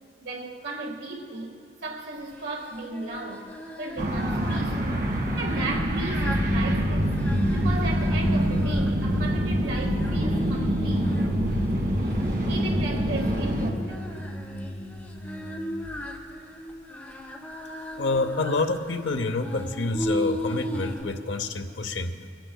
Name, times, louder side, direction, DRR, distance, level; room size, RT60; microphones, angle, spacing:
voice 1, 0.2-1.5 1.8-3.5 3.8-7.1 7.5-11.1 12.5-14.1, right 3 dB, 85° right, 1.7 m, -35 dB
Singing, 2.3-21.0, equal, 10° left, 1.3 m, -38 dB
sound 1, 4.0-13.7, right 1 dB, 55° right, 1.8 m, -27 dB
sound 2, 6.2-15.8, equal, 25° left, 1.2 m, -29 dB
voice 2, 18.0-22.1, left 3 dB, 85° left, 0.8 m, -27 dB
22.0 x 15.0 x 2.3 m
head